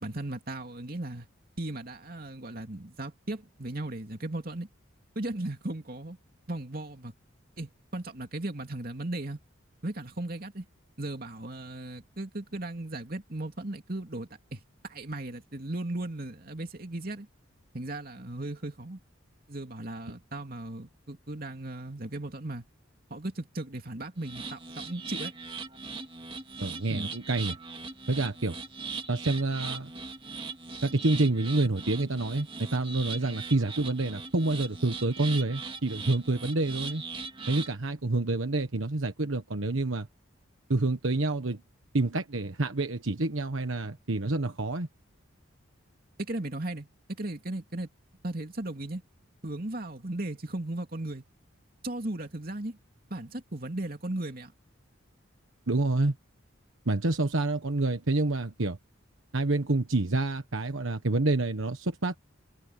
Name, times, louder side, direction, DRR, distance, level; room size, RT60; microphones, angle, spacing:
voice 1, 0.0-1.3 1.6-4.7 5.1-6.2 6.5-7.1 7.6-9.4 9.8-10.6 11.0-17.3 17.7-19.0 19.5-22.6 23.1-25.3 26.9-27.1 46.2-47.9 48.2-49.0 49.4-51.2 51.8-52.8 53.1-54.5, right 1 dB, 45° right, 2.9 m, -36 dB
sound 1, 24.2-37.8, right 4 dB, 25° right, 2.3 m, -40 dB
voice 2, 26.6-27.6 28.1-28.6 29.1-29.9 30.8-37.0 37.5-40.1 40.7-41.6 41.9-44.9 55.7-56.1 56.8-58.8 59.3-62.2, right 2 dB, 75° right, 1.3 m, -28 dB
head